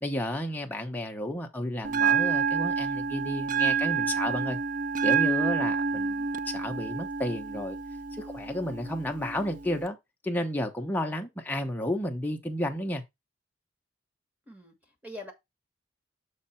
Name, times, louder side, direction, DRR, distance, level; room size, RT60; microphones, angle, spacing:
voice 1, 0.0-4.6 5.0-6.2 6.5-7.8 8.1-10.0 10.2-13.0, left 1 dB, 10° left, 0.9 m, -32 dB
Bell, 1.8-9.8, right 6 dB, 40° right, 0.4 m, -28 dB
voice 2, 14.5-15.3, left 1 dB, 10° right, 1.5 m, -44 dB
6.6 x 4.7 x 4.3 m
head